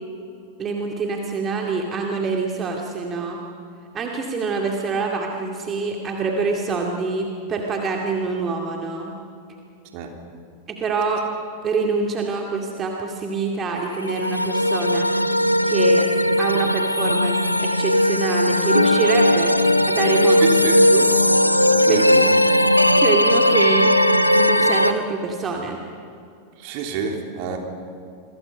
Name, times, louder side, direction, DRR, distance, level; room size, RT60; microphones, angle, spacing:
voice 1, 0.6-3.4 3.9-9.1 10.7-11.2 11.6-15.2 15.6-16.1 16.4-19.6 19.9-20.6 20.9-21.1 21.9-22.0 23.0-23.9 24.3-25.8, right 4 dB, 25° right, 1 dB, 2.4 m, -25 dB
sound 1, 13.9-24.9, left 1 dB, 90° left, 0.9 m, -18 dB
voice 2, 20.4-20.8 21.9-22.3 26.6-27.6, right 5 dB, 45° right, 3 dB, 3.4 m, -27 dB
28.5 x 23.5 x 5.5 m, 2.5 s
figure-of-eight pair, 90°, 0 cm